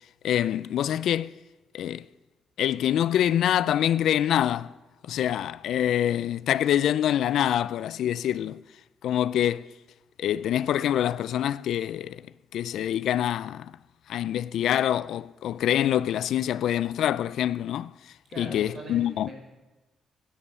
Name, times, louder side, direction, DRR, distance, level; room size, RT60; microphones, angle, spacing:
voice 1, 0.2-1.4 1.7-2.1 2.6-4.7 5.0-8.6 9.0-9.7 10.2-12.2 12.5-13.7 14.1-17.9 18.4-19.3, left 11 dB, 70° left, 0.3 m, -25 dB
voice 2, 18.3-19.3, right 1 dB, 35° right, 4.4 m, -41 dB
16.0 x 9.9 x 5.5 m
cardioid pair, 165°, 0 cm